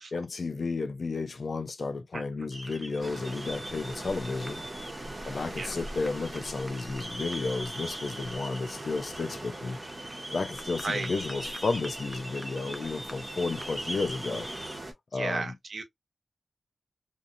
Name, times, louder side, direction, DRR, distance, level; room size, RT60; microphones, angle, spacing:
voice 1, 0.1-4.6 5.2-9.8 10.3-14.5 15.1-15.5, left 3 dB, 65° left, 0.5 m, -32 dB
sound 1, 2.5-14.8, right 1 dB, 10° right, 0.5 m, -42 dB
sound 2, 3.0-14.9, right 1 dB, 30° right, 1.0 m, -42 dB
voice 2, 15.1-15.8, right 3 dB, 70° right, 0.7 m, -33 dB
2.7 x 2.6 x 2.5 m
wide cardioid pair, 95°, 0 cm